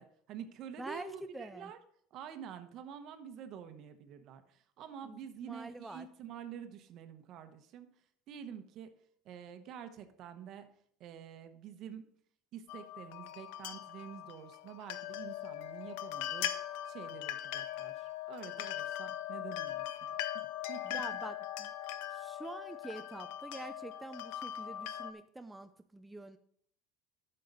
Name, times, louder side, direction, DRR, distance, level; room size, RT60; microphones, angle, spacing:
voice 1, 0.0-1.8 2.1-7.9 8.3-8.9 9.2-10.7 11.0-12.0 12.5-16.5 16.9-21.0, right 8 dB, 55° right, 8 dB, 1.1 m, -48 dB
voice 2, 0.8-1.7 5.0-6.1 20.8-21.7 22.1-26.4, right 2 dB, 10° right, 8 dB, 0.5 m, -46 dB
sound 1, 12.7-25.1, left 12 dB, 80° left, 0.5 m, -40 dB
10.5 x 6.7 x 4.0 m, 0.66 s
supercardioid pair, 105°, 0 cm